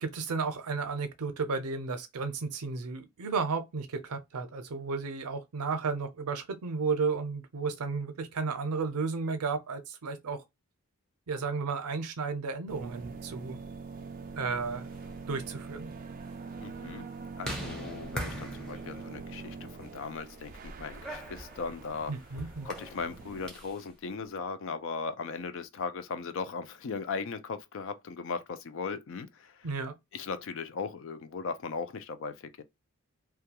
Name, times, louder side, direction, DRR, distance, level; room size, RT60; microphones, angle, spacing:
voice 1, 0.0-10.4 11.3-13.6 14.4-14.9 15.3-15.9 22.1-22.7 29.6-29.9, right 4 dB, 90° right, 0.5 m, -33 dB
sound 1, 12.7-23.5, right 4 dB, 40° right, 0.3 m, -44 dB
sound 2, 14.8-23.9, equal, 5° left, 0.6 m, -44 dB
voice 2, 16.6-17.1 17.4-22.1 22.6-29.7 30.1-32.6, left 5 dB, 60° left, 0.4 m, -38 dB
2.3 x 2.2 x 2.8 m
head